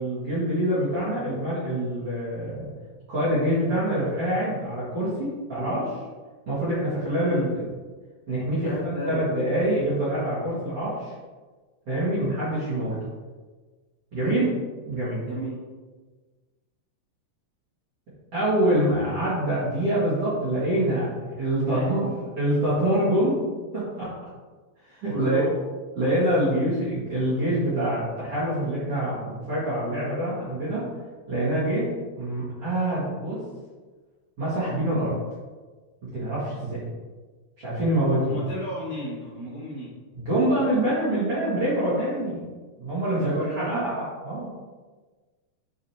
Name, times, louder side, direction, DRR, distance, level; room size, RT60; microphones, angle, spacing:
voice 1, 0.0-2.7 3.1-5.9 6.5-7.7 8.3-11.1 11.9-13.0 14.1-14.5 14.8-15.2 18.3-22.0 22.4-24.1 24.9-25.4 25.9-30.8 31.3-31.9 32.2-33.4 34.4-35.1 36.1-36.9 37.6-38.4 40.1-42.4 42.8-44.5, right 1 dB, 45° right, -12 dB, 2.1 m, -25 dB
voice 2, 8.6-9.3 14.2-14.4 15.2-15.6 21.6-21.9 25.1-25.5 38.2-40.0 43.1-43.8, equal, 50° left, -10 dB, 2.5 m, -33 dB
7.2 x 5.0 x 2.9 m, 1.4 s
omnidirectional pair, 5.0 m